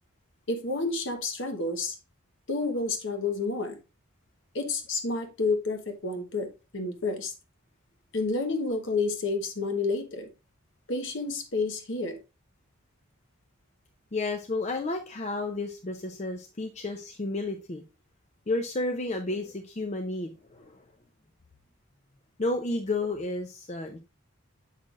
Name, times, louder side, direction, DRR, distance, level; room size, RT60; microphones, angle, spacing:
voice 1, 0.5-2.0 2.5-3.8 4.5-7.3 8.1-10.3 10.9-12.2, left 3 dB, 60° left, 1.1 m, -30 dB
voice 2, 14.1-17.8 18.5-20.8 22.4-24.0, left 2 dB, 30° left, 0.5 m, -31 dB
7.5 x 5.7 x 2.4 m
head